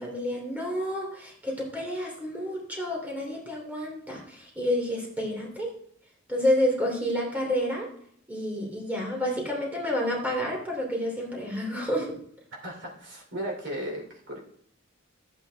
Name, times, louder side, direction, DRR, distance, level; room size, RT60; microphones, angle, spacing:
voice 1, 0.0-5.7 6.3-7.9 8.3-12.1, equal, 10° right, -2 dB, 2.9 m, -29 dB
voice 2, 12.6-14.4, equal, 60° right, 1 dB, 2.9 m, -35 dB
13.5 x 8.2 x 3.4 m, 0.64 s
head